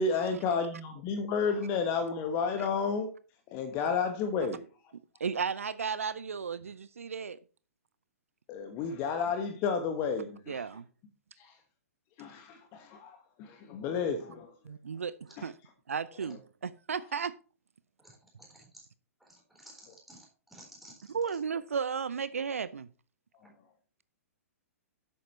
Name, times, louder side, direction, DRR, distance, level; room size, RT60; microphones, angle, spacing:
voice 1, 0.0-3.1 3.5-4.6 8.5-10.6 11.4-11.5 12.2-14.5, left 5 dB, 30° left, 1.2 m, -31 dB
voice 2, 5.2-7.4 10.5-10.8 14.6-15.6 15.9-17.3 21.1-22.9, right 6 dB, 65° right, 0.5 m, -34 dB
voice 3, 19.2-20.2 20.5-21.1, right 1 dB, ahead, 4.0 m, -53 dB
11.0 x 8.5 x 3.1 m
figure-of-eight pair, 115°, 8 cm